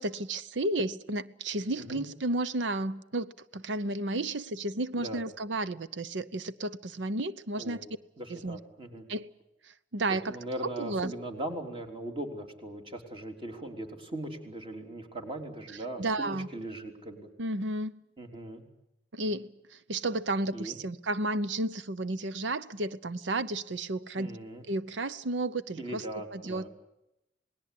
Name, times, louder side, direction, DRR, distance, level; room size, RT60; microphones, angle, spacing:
voice 1, 0.0-7.9 8.3-8.6 9.1-9.3 9.6-10.4 10.6-11.1 16.0-16.5 17.4-18.1 19.1-24.4 24.7-26.7, right 2 dB, 85° right, 0.8 m, -32 dB
voice 2, 7.6-7.9 8.2-9.1 10.1-17.3 18.2-18.6 20.5-20.8 24.1-24.6 25.8-26.7, right 1 dB, 30° right, 3.6 m, -39 dB
28.0 x 19.5 x 8.5 m
head